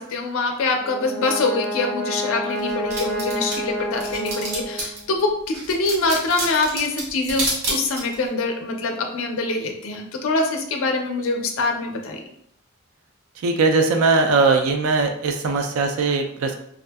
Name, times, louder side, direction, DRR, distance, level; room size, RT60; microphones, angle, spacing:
voice 1, 0.0-12.2, left 3 dB, 60° left, 3 dB, 0.4 m, -24 dB
Brass instrument, 0.7-5.2, equal, ahead, 1.0 m, -29 dB
sound 1, 2.6-5.0 5.5-8.3, right 2 dB, 85° right, 1.0 m, -29 dB
voice 2, 13.4-16.5, right 3 dB, 70° right, 4 dB, 0.3 m, -20 dB
2.6 x 2.4 x 2.2 m, 0.68 s
head